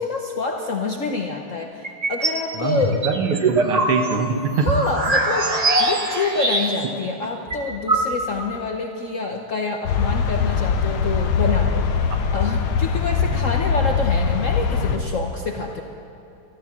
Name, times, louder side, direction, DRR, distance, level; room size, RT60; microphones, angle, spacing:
voice 1, 0.0-3.0 4.6-5.5 5.8-11.9 12.3-15.8, left 3 dB, 60° left, 2 dB, 0.8 m, -27 dB
sound 1, 1.8-2.4 2.8-7.0 7.2-7.3 7.5-8.5, right 2 dB, 30° right, 0.7 m, -22 dB
voice 2, 2.5-4.7 13.3-13.4, right 5 dB, 90° right, 5 dB, 2.1 m, -24 dB
sound 2, 9.9-15.0, left 6 dB, 75° left, 1.8 m, -21 dB
13.5 x 13.0 x 7.3 m, 2.7 s
omnidirectional pair, 2.4 m